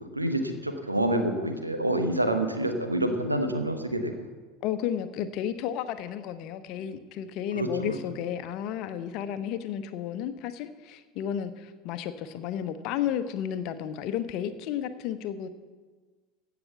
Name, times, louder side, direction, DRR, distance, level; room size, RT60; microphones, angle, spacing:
voice 1, 0.0-4.3 7.5-8.0, right 1 dB, 90° right, 6 dB, 1.2 m, -28 dB
voice 2, 4.6-15.5, left 9 dB, 50° left, 11 dB, 0.9 m, -32 dB
16.0 x 6.0 x 7.2 m, 1.4 s
figure-of-eight pair, 75°, 0 cm